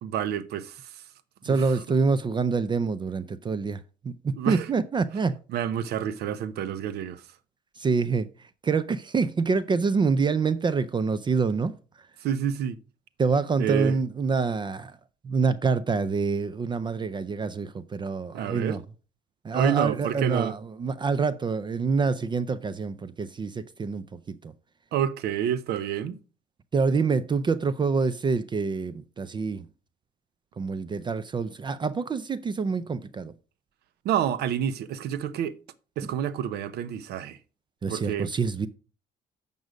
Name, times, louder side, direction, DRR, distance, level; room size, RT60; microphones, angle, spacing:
voice 1, 0.0-1.1 1.4-1.8 4.4-4.7 5.5-7.3 12.2-12.8 13.6-14.0 18.3-18.8 19.5-20.6 24.9-26.2 34.0-35.5 36.0-37.4 37.9-38.3, right 9 dB, 70° right, 0.7 m, -29 dB
voice 2, 1.4-5.4 7.8-11.7 13.2-15.0 15.2-18.8 19.4-24.5 26.7-29.7 30.6-33.3 37.8-38.7, right 4 dB, 25° right, 0.5 m, -26 dB
7.9 x 5.4 x 5.0 m
cardioid pair, 110°, 17 cm